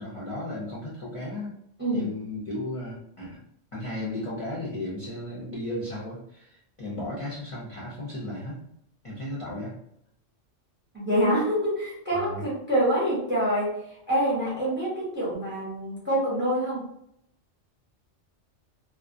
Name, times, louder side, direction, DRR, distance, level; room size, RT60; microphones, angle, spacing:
voice 1, 0.0-1.5 1.9-3.4 3.7-8.6 9.0-9.7 12.1-12.4, left 1 dB, 40° left, -7 dB, 0.5 m, -35 dB
voice 2, 10.9-16.9, equal, 10° right, -6 dB, 0.7 m, -26 dB
2.3 x 2.1 x 2.6 m, 0.75 s
omnidirectional pair, 1.2 m